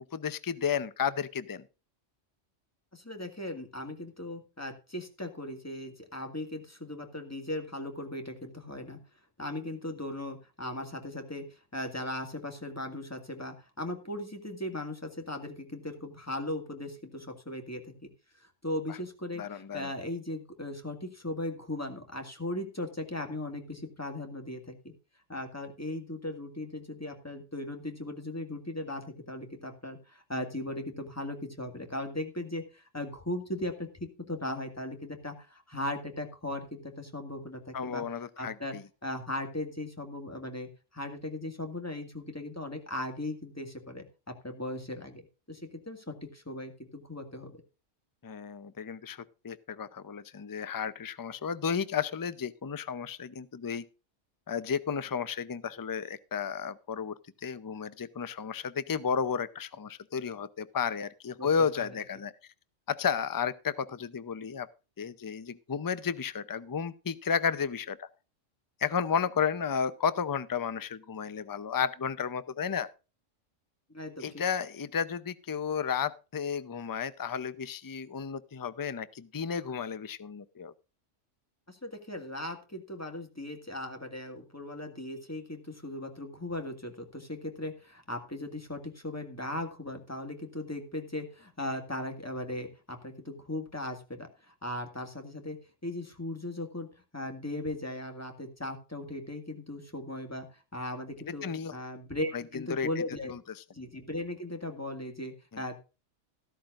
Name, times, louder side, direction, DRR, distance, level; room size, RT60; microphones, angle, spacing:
voice 1, 0.1-1.6 19.4-19.9 37.7-38.8 48.2-53.9 54.5-62.3 62.9-64.7 65.0-68.1 68.8-72.9 74.2-80.7 101.3-101.7 102.3-102.9 103.3-103.4 105.5-105.6, left 6 dB, 30° left, 0.4 m, -33 dB
voice 2, 2.9-9.0 9.4-18.1 18.4-24.7 25.3-38.8 39.0-44.1 44.4-47.6 61.4-61.9 73.9-74.4 81.7-101.5 101.7-103.3 103.7-105.8, left 1 dB, 10° left, 1.9 m, -38 dB
14.0 x 13.0 x 2.5 m
omnidirectional pair, 1.3 m